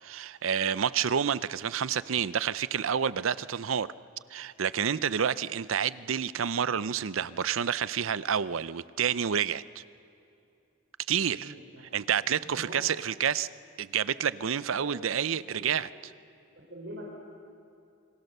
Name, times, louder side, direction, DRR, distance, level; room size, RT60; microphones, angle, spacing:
voice 1, 0.0-3.9 4.3-9.8 11.1-11.5 11.9-13.5 13.8-15.9, right 8 dB, 75° right, 17 dB, 0.6 m, -29 dB
voice 2, 11.3-11.9 12.4-12.8 14.7-14.9 15.5-15.7 16.7-17.2, equal, 55° right, -3 dB, 4.2 m, -44 dB
29.0 x 23.5 x 6.7 m, 2.6 s
head